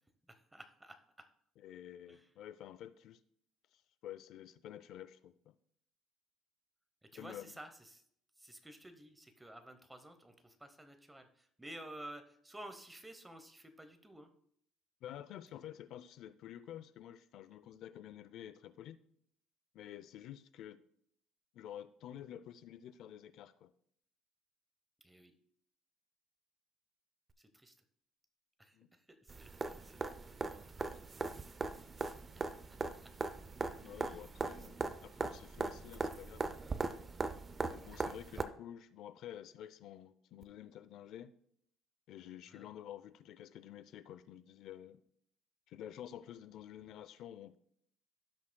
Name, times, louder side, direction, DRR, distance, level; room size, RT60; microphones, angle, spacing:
voice 1, 0.2-1.3 2.1-2.3 7.0-8.0 8.4-14.3 25.0-25.3 27.4-27.8 28.6-31.1 31.4-31.5 32.9-33.1 33.8-34.3 42.5-42.7, right 1 dB, 5° right, 7 dB, 0.8 m, -53 dB
voice 2, 1.6-3.2 3.7-5.5 7.1-7.5 15.0-19.0 19.7-20.8 21.5-23.7 28.7-28.9 32.8-33.0 33.8-36.6 37.6-41.3 42.1-45.0 45.7-47.6, left 11 dB, 60° left, 15 dB, 0.5 m, -50 dB
sound 1, 29.3-38.4 40.4-40.5, right 3 dB, 20° right, 0.4 m, -40 dB
16.0 x 6.1 x 2.2 m, 0.68 s
cardioid pair, 145°, 0 cm